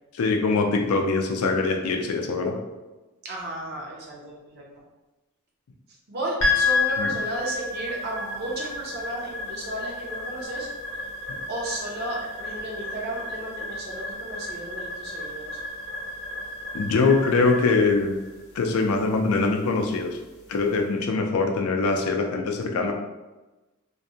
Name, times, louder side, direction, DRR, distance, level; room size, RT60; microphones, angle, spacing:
voice 1, 0.1-2.5 7.0-7.1 16.7-18.2 18.5-20.2 20.5-22.9, left 3 dB, 85° left, 3 dB, 0.4 m, -23 dB
voice 2, 3.2-4.6 6.1-10.7 10.9-11.0 11.5-15.6, right 1 dB, 50° right, -2 dB, 0.6 m, -34 dB
sound 1, 6.4-20.8, left 3 dB, 65° left, 0.8 m, -31 dB
2.6 x 2.1 x 2.7 m, 1.1 s
head